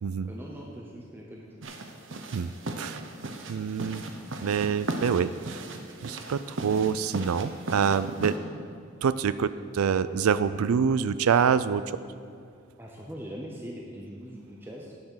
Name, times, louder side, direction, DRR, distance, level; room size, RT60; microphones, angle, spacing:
voice 1, 0.2-1.7 12.8-15.0, equal, 10° right, -2 dB, 0.7 m, -41 dB
sound 1, 1.6-8.4, right 2 dB, 60° right, 0.8 m, -37 dB
voice 2, 3.5-4.0 4.4-5.6 6.0-8.3 9.0-11.8, right 6 dB, 85° right, 14 dB, 0.4 m, -26 dB
10.5 x 5.9 x 6.4 m, 2.3 s
head